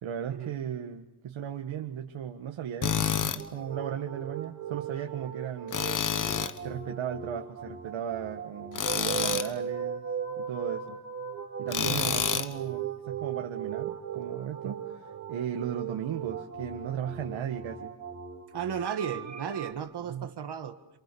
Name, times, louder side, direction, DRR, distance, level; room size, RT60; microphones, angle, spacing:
voice 1, 0.0-5.8 6.6-10.0 10.4-11.0 11.6-17.9 20.1-20.3, right 9 dB, 85° right, 4 dB, 1.6 m, -36 dB
Tools, 2.8-3.4 5.7-6.6 8.7-9.5 11.7-12.5, left 7 dB, 45° left, 1.3 m, -28 dB
sound 1, 3.4-19.7, right 7 dB, 35° right, 3.0 m, -38 dB
voice 2, 18.5-21.0, right 7 dB, 60° right, 8 dB, 1.6 m, -35 dB
28.0 x 27.5 x 6.8 m, 0.85 s
wide cardioid pair, 165°, 45 cm